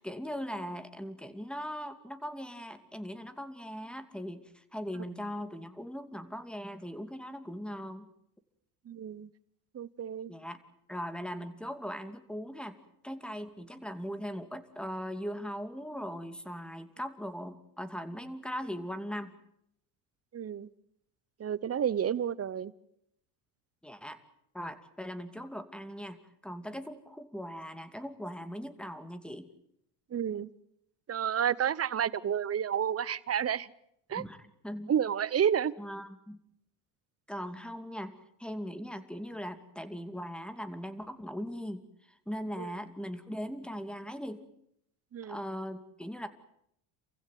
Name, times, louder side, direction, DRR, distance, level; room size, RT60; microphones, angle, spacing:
voice 1, 0.0-8.1 10.3-10.6 10.9-12.8 13.0-19.3 23.8-24.2 24.5-29.5 34.1-34.9 35.8-36.4 37.3-38.1 38.4-44.4 45.3-46.3, equal, ahead, 10 dB, 2.5 m, -40 dB
voice 2, 8.9-9.3 9.7-10.3 20.3-20.7 21.4-22.7 30.1-30.5 31.1-33.7 34.1-34.2 34.9-35.7 42.6-42.7 45.1-45.4, right 8 dB, 30° right, 20 dB, 1.0 m, -30 dB
28.5 x 15.5 x 9.4 m, 0.76 s
supercardioid pair, 80°, 45 cm